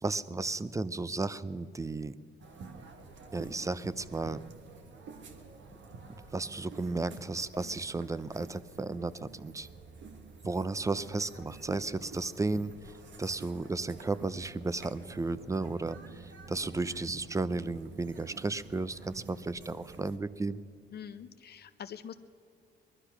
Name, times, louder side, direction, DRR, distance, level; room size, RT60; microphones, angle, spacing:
voice 1, 0.0-2.2 3.3-4.4 6.3-9.7 10.4-12.7 13.2-20.6, right 3 dB, 15° right, 17 dB, 0.5 m, -34 dB
sound 1, 2.4-20.2, right 4 dB, 65° right, 1.3 m, -49 dB
voice 2, 20.9-22.1, left 8 dB, 55° left, 10 dB, 0.6 m, -44 dB
20.5 x 12.0 x 5.9 m, 2.4 s
cardioid pair, 90°, 20 cm